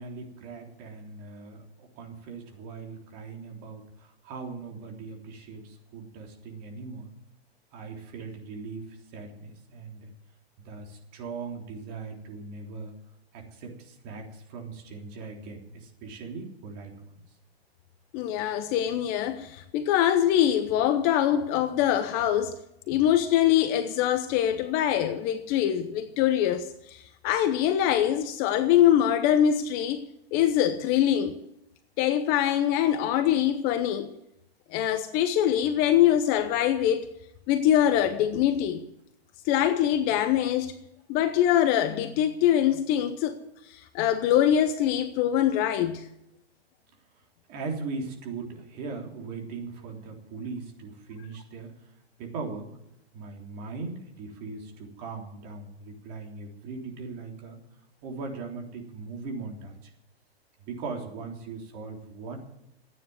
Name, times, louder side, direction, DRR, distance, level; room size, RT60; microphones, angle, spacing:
voice 1, 0.0-7.1 7.7-10.1 10.6-12.9 13.3-17.1 47.5-51.7 52.2-52.7 53.1-57.6 58.0-59.9 60.6-62.4, right 4 dB, 35° right, 3.5 m, -39 dB
voice 2, 18.1-22.6 22.9-30.0 30.3-31.3 32.0-34.1 34.7-37.1 37.5-38.8 39.5-40.8 41.1-43.4 43.7-46.1, left 10 dB, 30° left, 0.8 m, -23 dB
14.0 x 9.7 x 9.6 m
hypercardioid pair, 145°, 32 cm